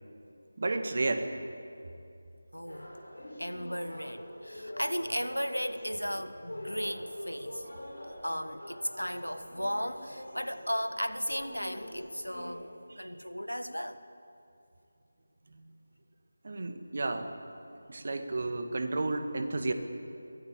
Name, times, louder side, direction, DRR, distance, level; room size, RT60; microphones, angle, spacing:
voice 1, 0.6-1.3 12.9-13.1 16.4-17.3 17.9-19.7, right 2 dB, 45° right, 7 dB, 1.9 m, -32 dB
voice 2, 2.5-2.9 3.4-7.8 8.2-14.0, equal, 90° left, 11 dB, 1.5 m, -35 dB
sound 1, 2.7-12.6, left 1 dB, 65° left, 6.3 m, -45 dB
23.0 x 17.5 x 8.6 m, 2.7 s
figure-of-eight pair, 160°, 0 cm